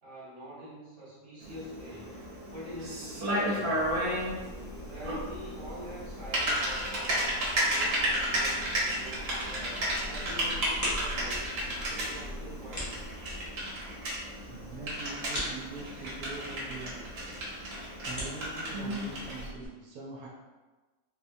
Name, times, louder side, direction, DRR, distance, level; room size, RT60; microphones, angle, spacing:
voice 1, 0.0-2.1 2.5-4.0 4.4-7.3 7.6-11.5 11.9-13.1, equal, 40° right, -8 dB, 1.2 m, -46 dB
Typing, 1.4-19.5, equal, 60° right, 1.1 m, -33 dB
sound 1, 3.8-13.5, left 1 dB, 70° left, 1.1 m, -44 dB
sound 2, 9.5-19.7, equal, 25° left, 0.4 m, -43 dB
voice 2, 14.5-17.0 18.0-20.3, right 3 dB, 85° right, -4 dB, 1.1 m, -43 dB
2.9 x 2.1 x 2.6 m, 1.2 s
omnidirectional pair, 1.6 m